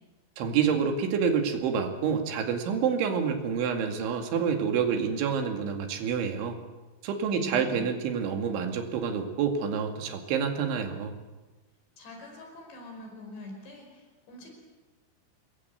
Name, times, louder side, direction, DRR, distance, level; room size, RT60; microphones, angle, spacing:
voice 1, 0.4-6.6 7.0-11.1, right 6 dB, 90° right, 4 dB, 4.6 m, -28 dB
voice 2, 7.3-7.9 12.0-14.5, left 2 dB, 70° left, 2 dB, 7.2 m, -44 dB
26.5 x 21.5 x 8.1 m, 1.2 s
omnidirectional pair, 5.2 m